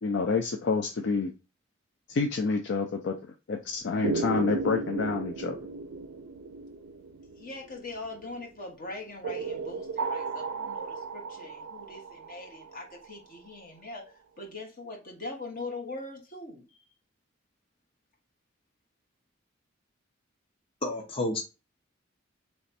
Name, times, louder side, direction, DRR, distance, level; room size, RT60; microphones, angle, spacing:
voice 1, 0.0-1.3 2.1-3.1 3.5-5.6, left 4 dB, 65° left, 0.5 m, -28 dB
sound 1, 4.0-8.3 9.2-13.1, right 4 dB, 90° right, 0.4 m, -35 dB
voice 2, 7.3-14.0 14.4-16.8, left 2 dB, 45° left, 1.4 m, -41 dB
voice 3, 20.8-21.4, left 2 dB, 30° left, 0.8 m, -30 dB
3.4 x 3.1 x 4.1 m
head